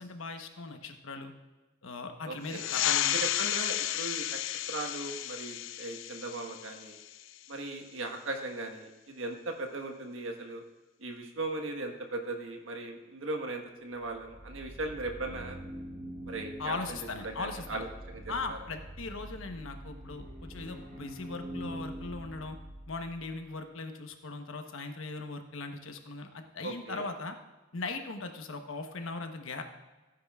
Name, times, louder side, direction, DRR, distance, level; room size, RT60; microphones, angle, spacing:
voice 1, 0.0-1.3 1.8-3.2 16.6-17.8 18.3-22.6 22.9-27.4 27.7-29.6, left 3 dB, 90° left, 5 dB, 1.1 m, -39 dB
voice 2, 2.2-2.7 3.1-4.4 4.7-7.0 7.5-10.6 11.0-15.6 16.2-18.6 26.6-27.1, right 2 dB, 85° right, 3 dB, 1.5 m, -38 dB
sound 1, 2.4-7.6, left 13 dB, 70° left, 0.3 m, -33 dB
sound 2, 14.0-23.3, right 1 dB, 55° right, 3.3 m, -45 dB
16.5 x 9.8 x 2.4 m, 1.2 s
head